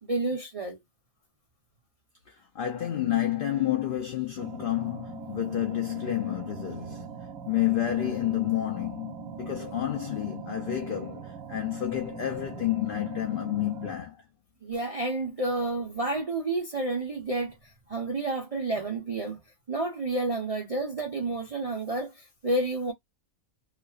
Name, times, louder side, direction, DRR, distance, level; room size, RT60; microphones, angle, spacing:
voice 1, 0.0-0.8 14.6-19.4 19.7-22.9, right 2 dB, 50° right, 0.4 m, -30 dB
voice 2, 2.3-14.2, left 12 dB, 75° left, 0.4 m, -30 dB
sound 1, 4.4-13.9, right 7 dB, 80° right, 1.0 m, -42 dB
2.4 x 2.2 x 2.3 m
omnidirectional pair, 1.4 m